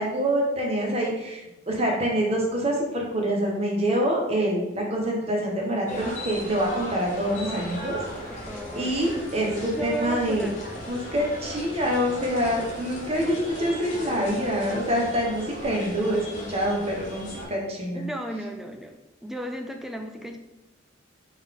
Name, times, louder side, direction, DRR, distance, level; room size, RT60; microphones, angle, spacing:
voice 1, 0.0-8.2 8.8-10.5 10.9-18.0, equal, 30° right, -1 dB, 1.0 m, -26 dB
sound 1, 5.9-17.4, equal, 40° left, 1.1 m, -37 dB
voice 2, 8.3-9.0 9.7-10.5 17.9-20.4, equal, ahead, 4 dB, 0.3 m, -34 dB
3.9 x 3.6 x 3.6 m, 0.98 s
head